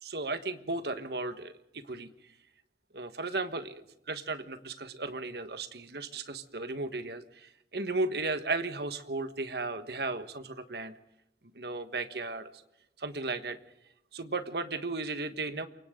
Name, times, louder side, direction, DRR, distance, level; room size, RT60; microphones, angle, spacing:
voice 1, 0.0-2.1 2.9-10.9 11.5-12.5 13.0-13.6 14.1-15.7, right 3 dB, 70° right, 10 dB, 1.5 m, -35 dB
28.5 x 24.0 x 3.8 m, 0.85 s
head